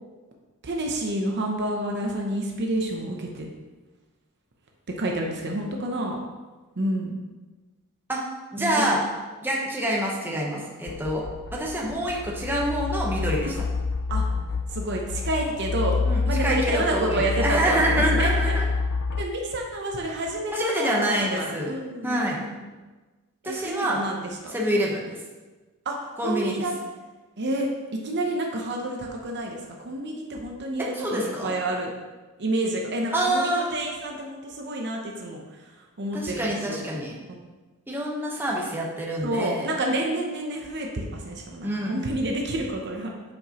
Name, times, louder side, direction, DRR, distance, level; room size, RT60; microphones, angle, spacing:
voice 1, 0.6-3.5 5.0-6.2 6.8-7.2 8.6-9.0 13.4-13.6 14.1-14.3 14.7-18.5 19.1-22.6 23.4-24.9 25.9-26.7 27.4-27.7 28.0-31.9 32.4-36.8 37.4-37.5 39.2-43.1, right 1 dB, 50° right, 1 dB, 0.8 m, -29 dB
voice 2, 8.5-9.0 9.4-13.6 16.0-18.7 20.5-21.7 22.0-22.4 23.4-24.0 24.5-25.2 26.2-26.7 30.8-31.5 33.1-33.7 36.1-37.2 37.9-39.7 41.6-42.0, right 1 dB, 10° right, -3 dB, 1.0 m, -26 dB
sound 1, 10.9-19.2, left 4 dB, 60° left, 0.3 m, -28 dB
8.4 x 4.8 x 3.0 m, 1.2 s
head